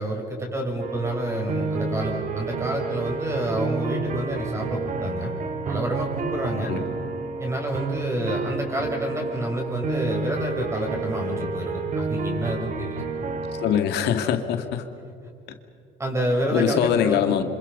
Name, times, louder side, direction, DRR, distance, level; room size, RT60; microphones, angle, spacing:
voice 1, 0.0-5.3 5.6-6.7 7.4-13.0 16.0-17.2, right 1 dB, 15° right, 1 dB, 6.5 m, -28 dB
sound 1, 0.8-13.8, right 4 dB, 50° right, 2.2 m, -30 dB
voice 2, 13.6-14.8 16.5-17.4, left 9 dB, 80° left, 6 dB, 2.1 m, -22 dB
27.0 x 26.0 x 5.5 m, 2.5 s
cardioid pair, 110°, 17 cm